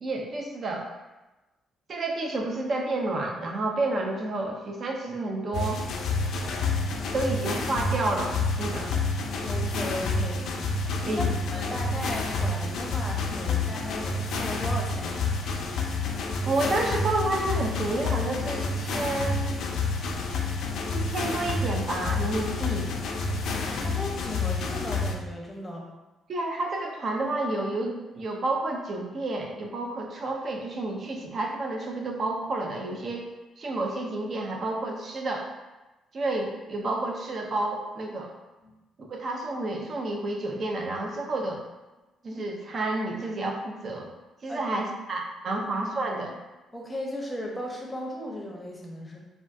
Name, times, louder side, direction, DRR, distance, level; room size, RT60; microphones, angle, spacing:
voice 1, 0.0-0.9 1.9-5.8 7.1-8.9 11.1-11.3 16.4-19.6 20.9-22.9 26.3-33.3 33.6-35.5 36.1-38.3 39.0-41.6 42.2-44.1 44.4-46.4, right 2 dB, 45° right, 1 dB, 0.5 m, -30 dB
sound 1, 5.5-25.1, left 3 dB, 70° left, 0.4 m, -29 dB
voice 2, 9.4-15.3 23.7-25.9 38.6-38.7 44.5-44.6 46.7-49.2, left 1 dB, 10° left, -2 dB, 0.7 m, -36 dB
3.4 x 2.3 x 2.5 m, 1.1 s
cardioid pair, 100°, 0 cm